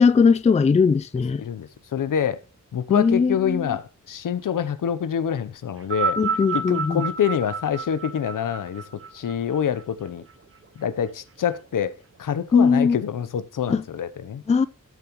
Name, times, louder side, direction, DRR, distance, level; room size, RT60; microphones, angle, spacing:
voice 1, 0.0-1.4 2.9-3.8 6.2-7.0 12.5-13.0 13.7-13.8 14.5-14.7, left 5 dB, 25° left, 0.3 m, -19 dB
voice 2, 1.4-2.4 2.7-6.2 6.5-8.8 9.1-10.2 10.8-11.9 12.2-14.4, left 8 dB, 85° left, 0.7 m, -26 dB
sound 1, 5.8-10.3 11.2-11.3, right 5 dB, 45° right, 0.7 m, -30 dB
11.5 x 7.0 x 3.0 m
wide cardioid pair, 150°, 31 cm